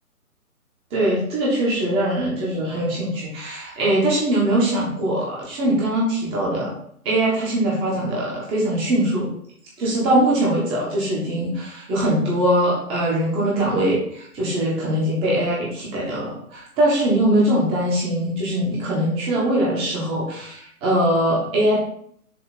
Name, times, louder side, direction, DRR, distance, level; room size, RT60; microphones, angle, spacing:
voice 1, 0.9-6.7 7.0-9.3 9.8-21.8, right 1 dB, 10° right, -5 dB, 1.4 m, -22 dB
7.1 x 3.4 x 5.1 m, 0.66 s
figure-of-eight pair, 140°, 45 cm